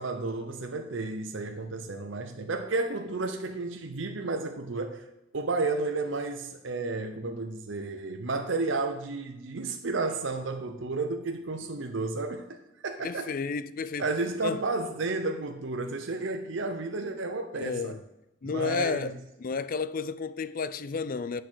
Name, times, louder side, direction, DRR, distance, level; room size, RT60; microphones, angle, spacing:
voice 1, 0.0-5.0 5.3-13.3 14.0-18.0 18.4-19.1, right 3 dB, 70° right, 0.8 m, -32 dB
voice 2, 13.0-14.1 14.4-14.6 17.6-18.0 18.4-19.1 19.4-21.4, left 5 dB, 45° left, 0.4 m, -32 dB
8.3 x 6.4 x 6.2 m
head